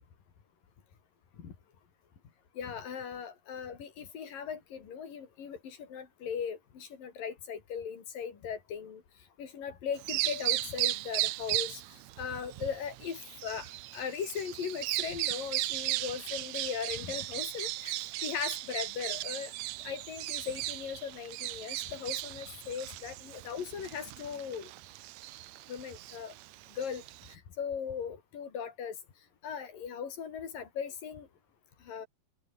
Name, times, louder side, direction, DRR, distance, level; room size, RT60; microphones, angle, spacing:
voice 1, 2.6-9.0 9.4-19.5 19.8-24.7 25.7-26.3 26.8-27.0 27.3-29.0 29.4-31.3 31.8-32.1, left 7 dB, 80° left, 5.2 m, -38 dB
Bird vocalization bird call bird song, 10.0-27.3, right 17 dB, 80° right, 1.6 m, -36 dB
omnidirectional pair, 3.9 m